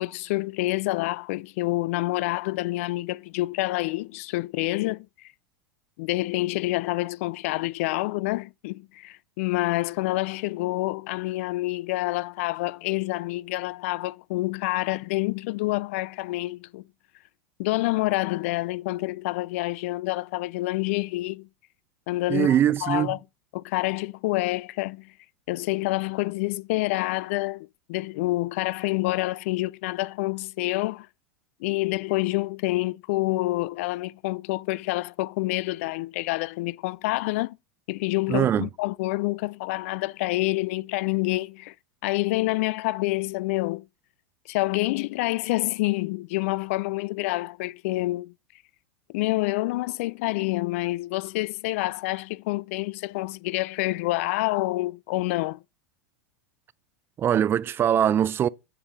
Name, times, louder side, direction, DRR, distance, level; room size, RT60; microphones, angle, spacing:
voice 1, 0.0-5.3 6.0-16.8 17.6-21.5 22.1-23.2 23.5-25.1 25.5-31.1 31.6-37.6 37.9-41.7 42.0-43.8 44.5-48.3 49.1-55.6, left 20 dB, 60° left, 0.4 m, -27 dB
voice 2, 22.3-23.1 38.3-38.7 57.2-58.5, right 10 dB, 30° right, 0.4 m, -22 dB
8.8 x 7.1 x 4.1 m
hypercardioid pair, 100°, 8 cm